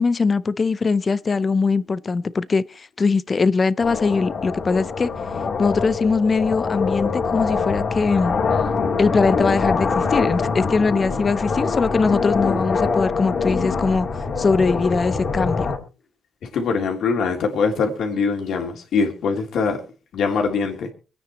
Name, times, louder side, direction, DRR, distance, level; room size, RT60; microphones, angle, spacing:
voice 1, 0.0-5.1 5.6-8.3 9.0-15.7, left 4 dB, 30° left, 0.6 m, -21 dB
sound 1, 3.8-15.8, left 5 dB, 50° left, 3.3 m, -24 dB
voice 2, 16.5-19.8 20.1-20.9, left 5 dB, 70° left, 3.3 m, -22 dB
26.0 x 9.6 x 3.0 m
cardioid pair, 140°, 0 cm